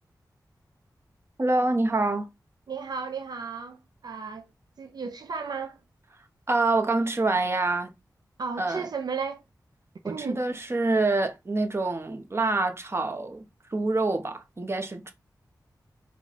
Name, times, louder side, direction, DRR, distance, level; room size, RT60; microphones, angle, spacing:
voice 1, 1.4-2.3 6.5-7.9 8.6-8.9 10.0-15.1, right 2 dB, 35° right, 0.9 m, -26 dB
voice 2, 2.7-4.4 4.8-5.8 8.4-9.4 10.1-10.4, right 5 dB, 70° right, 0.5 m, -34 dB
4.5 x 2.3 x 4.1 m
wide cardioid pair, 65°, 7 cm